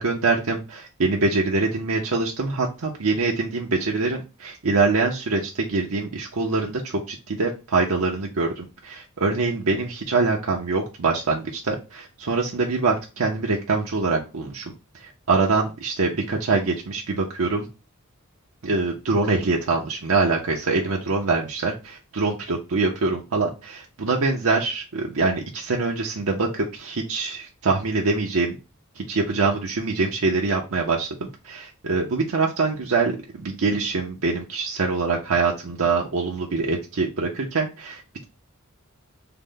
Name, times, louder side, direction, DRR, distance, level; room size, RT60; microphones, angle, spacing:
voice 1, 0.0-14.7 15.0-17.7 18.6-28.6 29.0-31.1 31.4-33.2 33.4-38.2, right 3 dB, 75° right, -1 dB, 0.7 m, -24 dB
3.8 x 2.1 x 3.6 m, 0.29 s
head